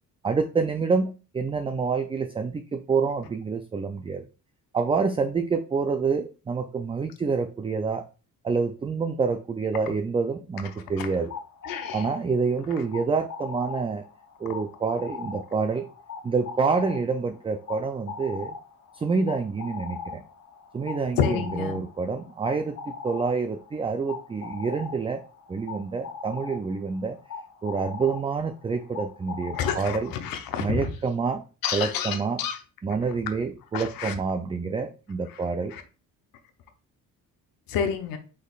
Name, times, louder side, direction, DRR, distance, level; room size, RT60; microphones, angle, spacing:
voice 1, 0.2-4.3 4.7-8.0 8.4-11.3 11.9-14.0 14.4-15.9 16.2-18.6 18.9-20.2 20.7-25.2 25.5-27.2 27.6-30.1 30.6-31.4 31.7-32.4 32.8-35.7, right 5 dB, 15° right, 6 dB, 0.3 m, -27 dB
sound 1, 10.9-30.3, left 6 dB, 40° left, 0.8 m, -40 dB
voice 2, 11.6-12.1 21.2-21.8 29.5-30.9 31.6-32.6 33.7-34.2 35.3-35.4 35.7-35.8 37.7-38.2, left 7 dB, 75° left, 6 dB, 0.8 m, -29 dB
5.1 x 4.1 x 2.4 m, 0.33 s
cardioid pair, 100°, 36 cm